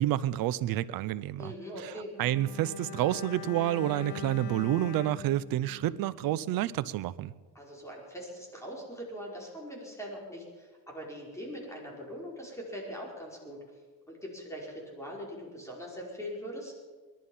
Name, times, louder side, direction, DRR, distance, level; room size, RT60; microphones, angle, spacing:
voice 1, 0.0-1.5 2.2-7.3, right 13 dB, 85° right, 0.7 m, -29 dB
voice 2, 1.4-2.1 7.5-13.6 14.1-16.8, equal, 10° left, 5.1 m, -41 dB
Bowed string instrument, 2.1-6.6 6.8-7.0, left 9 dB, 65° left, 1.1 m, -43 dB
21.0 x 12.0 x 5.6 m
cardioid pair, 115°, 34 cm